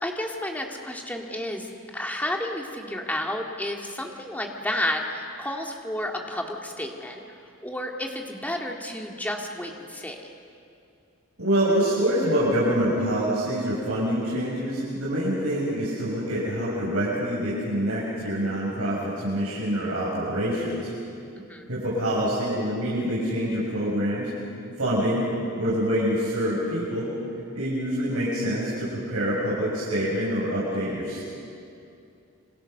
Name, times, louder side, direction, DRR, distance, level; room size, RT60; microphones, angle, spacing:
voice 1, 0.0-7.2 7.6-10.2 21.5-21.7, left 1 dB, 5° left, 1 dB, 2.1 m, -31 dB
voice 2, 11.4-20.9 21.7-24.3 24.8-25.3 25.6-27.1 27.5-31.2, equal, 85° right, -7 dB, 6.4 m, -26 dB
27.0 x 25.0 x 6.7 m, 2.6 s
head